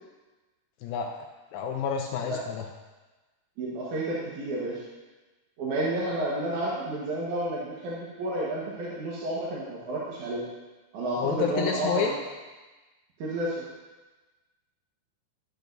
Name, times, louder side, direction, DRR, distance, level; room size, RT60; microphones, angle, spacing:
voice 1, 1.5-2.6 11.2-12.1, left 7 dB, 80° left, 2 dB, 2.2 m, -29 dB
voice 2, 3.6-4.8 5.6-10.4 10.9-12.1 13.2-13.6, right 1 dB, 60° right, -6 dB, 2.3 m, -31 dB
12.0 x 8.9 x 2.7 m, 1.2 s
omnidirectional pair, 4.8 m